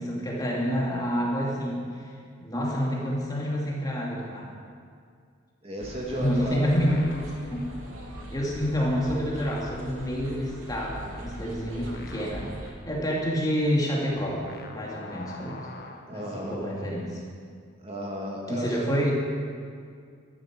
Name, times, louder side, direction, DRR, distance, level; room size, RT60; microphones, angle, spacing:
voice 1, 0.0-2.1 2.4-4.5 6.1-7.7 8.3-12.5 12.9-14.4 14.7-15.6 16.1-17.2 18.5-19.1, equal, 20° left, -3 dB, 2.7 m, -28 dB
voice 2, 5.6-6.6 16.1-16.7 17.8-18.9, right 1 dB, 30° right, -2 dB, 2.4 m, -34 dB
sound 1, 5.8-12.7, equal, 85° right, 2.9 m, -41 dB
sound 2, 6.5-8.8 9.1-16.6, left 2 dB, 50° left, 1.3 m, -45 dB
14.0 x 13.0 x 6.3 m, 2.2 s
head